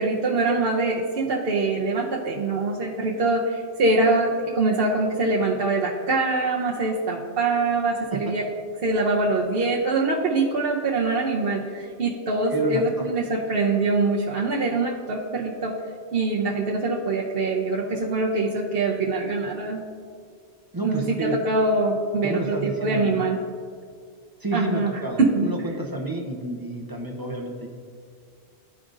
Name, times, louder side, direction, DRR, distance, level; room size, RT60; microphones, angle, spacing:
voice 1, 0.0-8.4 8.8-15.7 16.1-19.8 20.8-23.4 24.5-25.7, right 3 dB, 55° right, -4 dB, 0.9 m, -24 dB
voice 2, 12.5-13.1 20.7-21.4 22.2-23.2 24.4-27.7, right 2 dB, 25° right, 0 dB, 0.5 m, -30 dB
13.5 x 4.9 x 2.6 m, 2.1 s
omnidirectional pair, 1.2 m